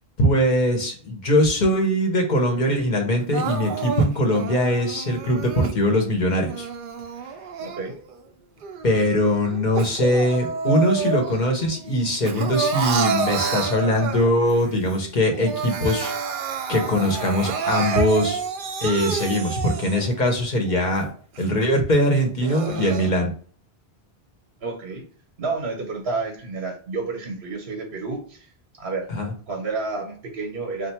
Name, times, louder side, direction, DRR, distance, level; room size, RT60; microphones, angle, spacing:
voice 1, 0.2-6.7 8.8-16.1 16.7-18.4 18.8-21.1 21.4-23.3 29.1-29.3, left 1 dB, 50° left, 2 dB, 1.1 m, -21 dB
Crying sobbing, 3.3-5.8 6.4-8.2 8.6-11.5 11.9-14.5 14.9-15.0 15.3-20.2 20.7-20.8 21.4-21.5 22.2-23.1, right 6 dB, 60° right, 0.7 m, -29 dB
voice 2, 7.6-7.9 24.6-25.0 25.4-28.5 28.8-29.1 29.5-30.9, right 3 dB, 85° right, 1 dB, 1.1 m, -30 dB
3.3 x 2.6 x 4.3 m, 0.44 s
omnidirectional pair, 1.0 m